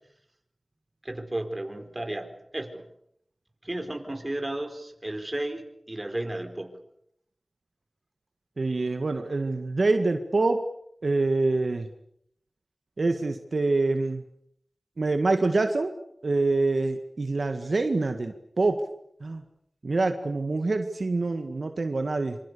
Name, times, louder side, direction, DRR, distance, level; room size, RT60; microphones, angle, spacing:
voice 1, 1.0-2.9 3.6-6.8, right 1 dB, 30° right, 6 dB, 4.6 m, -33 dB
voice 2, 8.6-10.6 11.0-11.9 13.0-14.2 15.0-15.9 16.2-18.8 19.2-19.4 19.8-22.4, right 3 dB, 70° right, 6 dB, 1.9 m, -25 dB
26.5 x 26.0 x 6.9 m, 0.72 s
wide cardioid pair, 55°, 0 cm